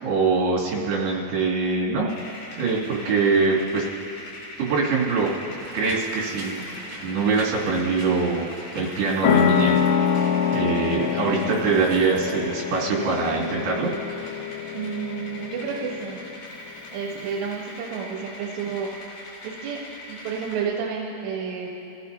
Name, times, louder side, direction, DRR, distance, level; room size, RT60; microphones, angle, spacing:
voice 1, 0.0-2.1 2.6-3.8 4.6-5.3 5.7-6.6 7.0-8.5 8.7-9.8 10.5-13.9, right 4 dB, 70° right, -5 dB, 4.4 m, -23 dB
sound 1, 2.1-20.6, left 1 dB, 65° left, 4.6 m, -41 dB
sound 2, 5.6-12.3, right 3 dB, 50° right, 2.2 m, -42 dB
sound 3, 9.2-16.4, left 8 dB, 90° left, 2.8 m, -25 dB
voice 2, 14.7-16.2 16.9-18.9 19.4-19.8 20.1-21.7, right 6 dB, 90° right, -3 dB, 3.5 m, -30 dB
27.5 x 15.5 x 2.7 m, 2.8 s
omnidirectional pair, 4.9 m